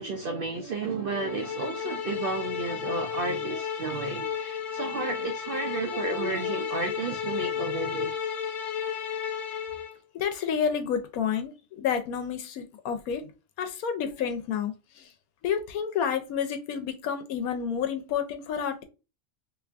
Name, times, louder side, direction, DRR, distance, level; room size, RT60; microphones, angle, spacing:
voice 1, 0.0-8.1, right 3 dB, 65° right, 0.5 m, -32 dB
sound 1, 1.1-9.9, left 8 dB, 75° left, 0.4 m, -33 dB
voice 2, 10.1-13.3 13.6-15.1 15.4-18.8, left 7 dB, 90° left, 1.1 m, -30 dB
3.3 x 2.9 x 2.4 m
omnidirectional pair, 1.5 m